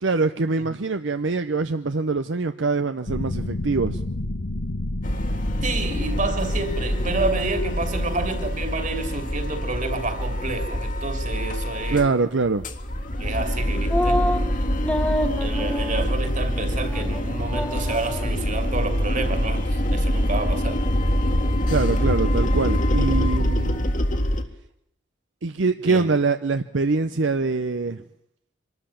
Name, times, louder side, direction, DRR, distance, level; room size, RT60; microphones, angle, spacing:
voice 1, 0.0-4.0 11.9-12.6 21.7-23.8 25.4-28.0, right 4 dB, 70° right, 0.8 m, -24 dB
sound 1, 3.1-11.5, left 1 dB, 70° left, 1.2 m, -32 dB
sound 2, 5.0-12.1 12.4-24.4, equal, 45° left, 1.9 m, -25 dB
voice 2, 5.6-12.0 13.2-14.3 15.4-20.8 25.9-26.1, right 3 dB, 40° right, 2.8 m, -29 dB
sound 3, 13.9-14.4 14.8-16.0 16.4-16.5 16.9-17.2 17.5-18.3, left 1 dB, 5° left, 1.5 m, -26 dB
24.5 x 13.5 x 8.6 m
head